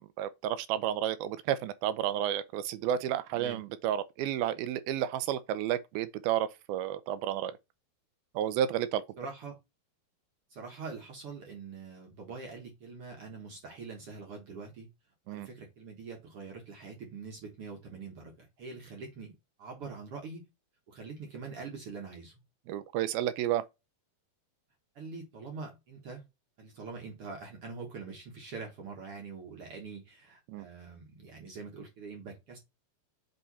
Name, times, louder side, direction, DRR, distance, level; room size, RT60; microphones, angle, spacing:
voice 1, 0.2-7.5 8.4-9.0 15.3-15.5 22.7-23.6 30.5-30.7, right 11 dB, 80° right, 2.4 m, -31 dB
voice 2, 3.3-3.6 9.2-9.6 10.5-14.9 15.3-20.4 20.9-22.4 24.9-26.2 26.6-32.6, right 4 dB, 55° right, 1.7 m, -44 dB
7.8 x 3.2 x 4.1 m
omnidirectional pair, 4.4 m